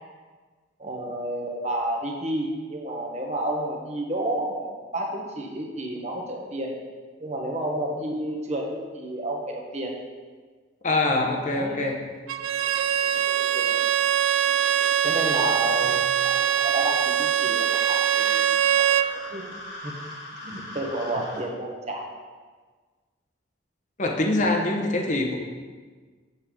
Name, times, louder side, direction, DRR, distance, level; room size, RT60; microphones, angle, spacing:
voice 1, 0.8-6.7 7.2-9.9 11.3-11.9 13.1-13.8 15.0-19.0 19.3-19.5 19.8-19.9 20.4-22.1, right 1 dB, 35° right, 0 dB, 1.0 m, -31 dB
voice 2, 10.8-12.0 15.9-16.0 24.0-25.4, left 2 dB, 40° left, 1 dB, 0.8 m, -24 dB
Bowed string instrument, 12.3-19.1, right 10 dB, 80° right, 0.3 m, -23 dB
sound 1, 17.9-21.4, left 1 dB, 80° left, 1.8 m, -40 dB
7.3 x 6.7 x 3.7 m, 1.4 s
head